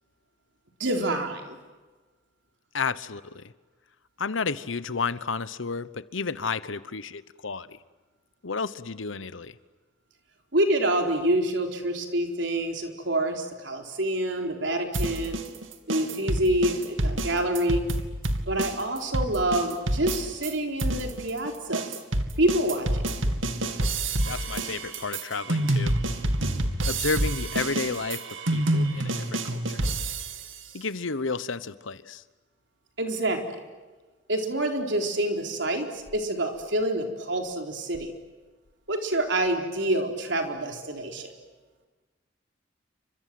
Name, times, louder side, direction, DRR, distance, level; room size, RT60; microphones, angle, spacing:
voice 1, 0.8-1.6 10.5-15.4 15.9-17.8 18.5-21.9 22.4-23.0 33.0-33.6 34.3-38.1 38.9-41.3, right 1 dB, 65° right, 4 dB, 4.3 m, -27 dB
voice 2, 2.7-3.4 4.2-7.8 8.4-9.5 24.3-26.0 26.8-29.8 30.7-32.2, left 4 dB, 90° left, 16 dB, 1.1 m, -32 dB
sound 1, 14.9-20.5 20.8-30.5, right 1 dB, 90° right, 2.4 m, -28 dB
29.5 x 26.0 x 7.8 m, 1.3 s
head